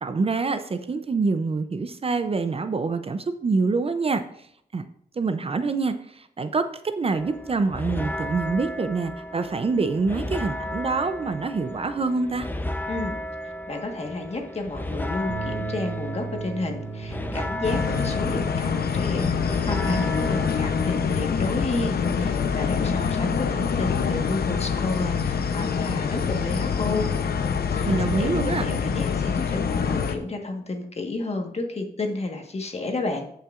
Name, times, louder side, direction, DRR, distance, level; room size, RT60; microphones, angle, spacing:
voice 1, 0.0-4.5 4.7-4.9 5.2-6.7 7.0-12.5 27.9-28.6, right 4 dB, 35° right, 10 dB, 0.5 m, -26 dB
sound 1, 7.1-21.1, left 1 dB, 10° left, 0.7 m, -34 dB
voice 2, 12.9-13.2 13.4-27.1 27.3-33.3, left 3 dB, 40° left, 3 dB, 1.4 m, -31 dB
sound 2, 15.3-23.8, right 4 dB, 70° right, 2.0 m, -39 dB
sound 3, 17.6-30.2, left 6 dB, 75° left, 0.8 m, -25 dB
15.5 x 5.7 x 2.5 m, 0.71 s
wide cardioid pair, 110°, 16 cm